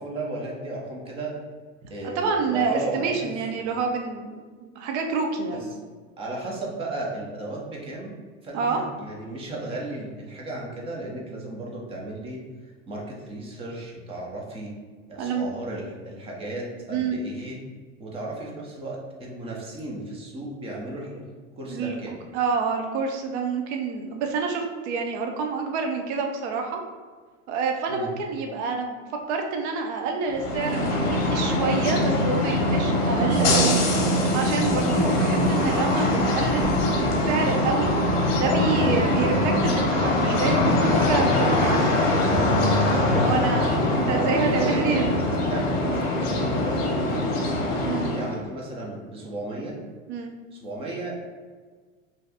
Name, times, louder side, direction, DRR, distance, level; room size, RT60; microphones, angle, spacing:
voice 1, 0.0-1.4 1.9-3.2 3.5-3.7 5.5-5.7 6.2-8.1 8.4-14.7 15.1-17.6 18.0-21.3 21.6-22.1 27.9-28.2 43.2-43.5 44.1-47.5 48.0-49.8 50.5-51.1, right 2 dB, 15° right, -2 dB, 0.4 m, -35 dB
voice 2, 2.2-5.6 8.5-8.8 15.2-15.5 16.9-17.2 21.7-21.9 22.3-26.8 27.5-29.0 29.3-33.8 34.3-36.7 37.0-37.9 38.4-41.9 43.0-45.1 47.8-48.1 50.1-50.3, right 5 dB, 60° right, 3 dB, 0.6 m, -27 dB
sound 1, 30.3-48.4, left 1 dB, 40° left, 0.8 m, -22 dB
2.7 x 2.3 x 3.3 m, 1.5 s
supercardioid pair, 125°, 39 cm